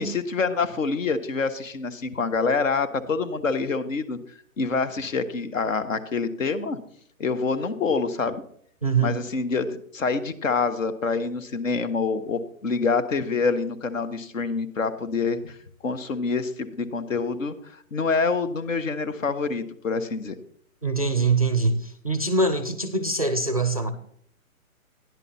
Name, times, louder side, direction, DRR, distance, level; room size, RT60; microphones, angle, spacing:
voice 1, 0.0-4.2 4.6-6.8 7.2-8.4 9.0-15.6 15.8-20.3, left 4 dB, 60° left, 9 dB, 1.3 m, -26 dB
voice 2, 8.8-9.2 20.8-23.9, right 3 dB, 25° right, 10 dB, 0.5 m, -23 dB
13.0 x 10.5 x 4.2 m, 0.63 s
hypercardioid pair, 175°, 43 cm